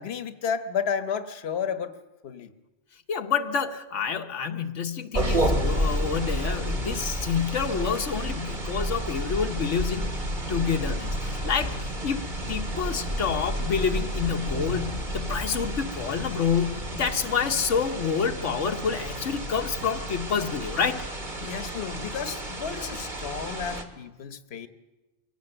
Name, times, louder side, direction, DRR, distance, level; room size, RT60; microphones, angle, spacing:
voice 1, 0.0-2.0 2.2-2.5 21.4-24.7, left 7 dB, 60° left, 9 dB, 1.3 m, -32 dB
voice 2, 3.1-10.2 10.5-21.0, left 6 dB, 80° left, 4 dB, 1.3 m, -28 dB
sound 1, 5.1-23.8, right 1 dB, 40° right, 2.2 m, -31 dB
23.5 x 17.0 x 7.9 m, 1.1 s
omnidirectional pair, 1.2 m